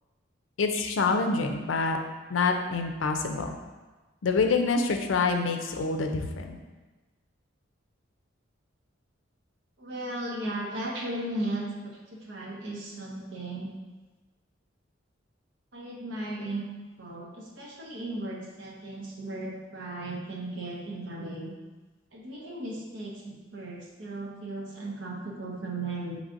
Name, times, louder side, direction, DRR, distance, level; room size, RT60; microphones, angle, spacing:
voice 1, 0.6-2.0 2.3-3.5 4.2-6.6, left 4 dB, 75° left, 4 dB, 0.5 m, -26 dB
voice 2, 9.8-13.7 15.7-16.6 17.0-21.5 22.1-26.2, right 2 dB, 70° right, -2 dB, 0.9 m, -36 dB
6.4 x 3.2 x 2.6 m, 1.2 s
head